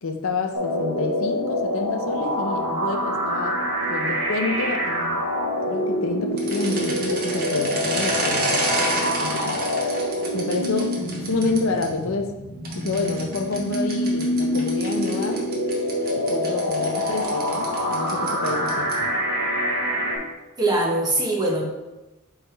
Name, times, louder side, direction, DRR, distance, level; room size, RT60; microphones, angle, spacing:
voice 1, 0.0-3.6 3.9-5.2 5.7-9.6 10.3-10.9 11.2-12.3 12.7-15.5 16.1-18.9, left 3 dB, 70° left, 5 dB, 0.6 m, -28 dB
sound 1, 0.5-20.2, left 1 dB, 80° right, 1.8 m, -26 dB
sound 2, 6.3-11.9 12.7-19.1, right 2 dB, 45° right, 1.2 m, -30 dB
voice 2, 20.6-21.6, right 2 dB, 20° right, -1 dB, 1.1 m, -22 dB
8.3 x 3.5 x 3.4 m, 1.0 s
head